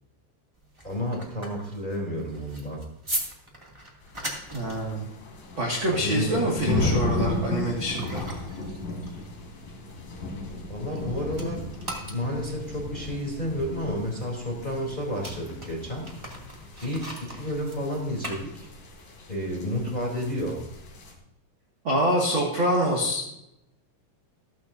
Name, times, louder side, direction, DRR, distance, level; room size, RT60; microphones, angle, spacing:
sound 1, 0.5-11.0 11.3-19.0, right 1 dB, 15° right, 1.1 m, -40 dB
voice 1, 0.8-2.8 5.9-6.5 6.8-7.2 10.7-11.6 12.0-16.1 16.8-18.7 19.3-20.6, equal, 15° left, -1 dB, 2.6 m, -31 dB
sound 2, 4.0-21.1, left 2 dB, 55° left, 4.2 m, -35 dB
voice 2, 4.5-5.1 5.6-8.2 21.8-23.2, equal, 40° right, -3 dB, 2.0 m, -25 dB
14.5 x 14.5 x 2.7 m, 0.84 s
omnidirectional pair, 5.0 m